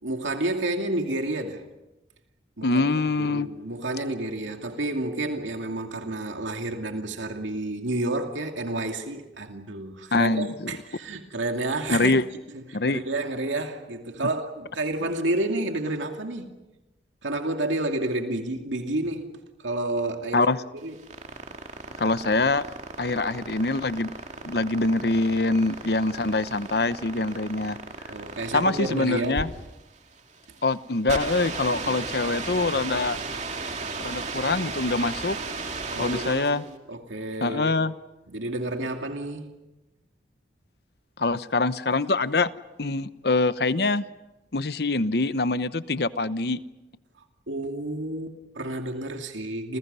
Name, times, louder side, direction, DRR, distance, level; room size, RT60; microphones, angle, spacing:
voice 1, 0.0-1.6 2.6-2.9 3.2-12.1 12.5-16.5 17.2-20.5 20.8-21.1 28.1-29.4 31.7-32.0 35.9-37.8 38.3-39.6 47.5-49.8, right 2 dB, 85° right, 2.5 m, -30 dB
voice 2, 2.6-3.5 10.1-10.7 11.9-12.2 12.7-13.0 20.3-20.6 22.0-22.6 23.0-24.1 24.5-27.8 28.5-29.5 30.6-33.2 34.0-35.4 36.0-36.6 37.4-37.9 41.2-42.5 42.8-44.0 44.5-46.6, left 3 dB, 55° left, 0.9 m, -24 dB
sound 1, 20.8-36.7, right 3 dB, 40° right, 2.6 m, -35 dB
29.5 x 29.0 x 5.6 m
head